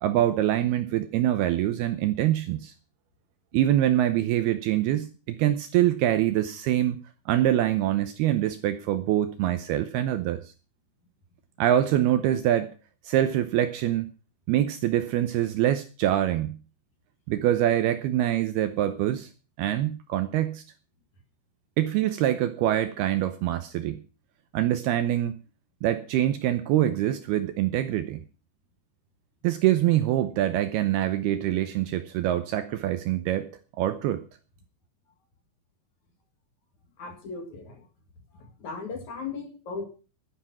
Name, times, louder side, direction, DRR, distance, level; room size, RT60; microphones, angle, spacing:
voice 1, 0.0-2.7 3.5-7.0 7.3-10.5 11.6-12.7 13.0-14.1 14.5-16.6 17.3-19.3 19.6-20.6 21.8-24.0 24.5-25.4 25.8-28.2 29.4-33.5 33.8-34.2, right 12 dB, 75° right, 10 dB, 2.4 m, -24 dB
voice 2, 37.0-37.9 38.3-39.9, left 4 dB, 50° left, 5 dB, 2.8 m, -37 dB
12.5 x 10.0 x 5.9 m, 0.35 s
omnidirectional pair, 5.2 m